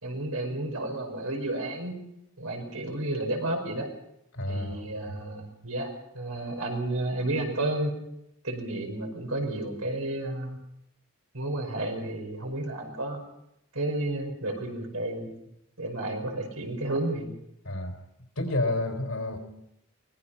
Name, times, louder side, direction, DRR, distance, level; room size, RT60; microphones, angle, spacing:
voice 1, 0.0-1.9 2.4-3.9 4.5-5.9 6.1-7.9 8.4-10.6 11.3-13.2 13.7-15.3 15.8-17.3, right 1 dB, 85° right, 2 dB, 5.2 m, -31 dB
voice 2, 4.3-5.2 17.6-17.9 18.4-19.4, left 2 dB, 75° left, 5 dB, 3.9 m, -30 dB
24.0 x 19.5 x 5.7 m, 0.80 s
head